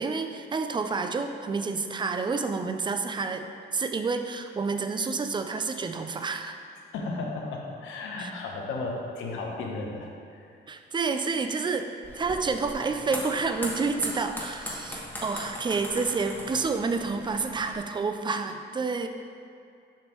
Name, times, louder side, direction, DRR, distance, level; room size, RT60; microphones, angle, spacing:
voice 1, 0.0-3.5 3.7-6.6 8.2-8.3 10.7-19.1, right 4 dB, 25° right, 7 dB, 0.4 m, -29 dB
voice 2, 6.9-10.6, left 3 dB, 90° left, 0 dB, 0.9 m, -34 dB
sound 1, 12.0-17.8, equal, 10° left, 1.2 m, -39 dB
7.4 x 5.2 x 3.0 m, 2.4 s
cardioid pair, 90°, 20 cm